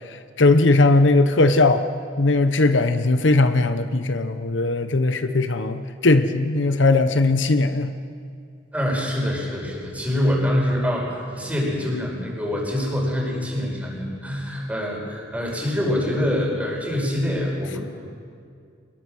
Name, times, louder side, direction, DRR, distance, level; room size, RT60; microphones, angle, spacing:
voice 1, 0.1-1.8 2.2-7.9, left 2 dB, 70° left, 9 dB, 0.9 m, -19 dB
voice 2, 8.7-17.8, left 1 dB, 10° right, -2 dB, 5.2 m, -25 dB
24.0 x 21.0 x 6.4 m, 2.2 s
head